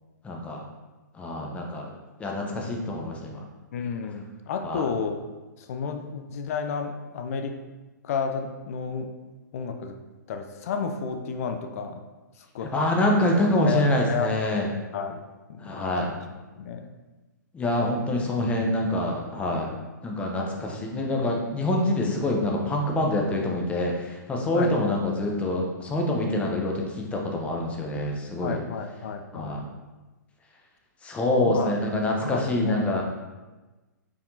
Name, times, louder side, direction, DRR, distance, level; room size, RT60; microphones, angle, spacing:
voice 1, 0.2-0.7 1.1-1.9 2.2-3.4 4.6-4.9 12.7-14.7 15.6-16.1 17.5-19.7 20.0-28.6 29.3-29.6 31.0-33.0, left 1 dB, 10° left, 0 dB, 0.6 m, -26 dB
voice 2, 3.7-5.2 5.6-7.6 8.0-9.1 9.5-10.0 10.3-12.0 12.4-12.7 13.7-14.3 14.9-15.2 15.5-15.8 16.6-16.9 18.4-18.5 24.5-24.9 28.4-29.6 31.3-31.7 32.2-32.8, left 5 dB, 50° left, 6 dB, 0.4 m, -31 dB
4.7 x 3.5 x 2.6 m, 1.2 s
figure-of-eight pair, 120°, 10 cm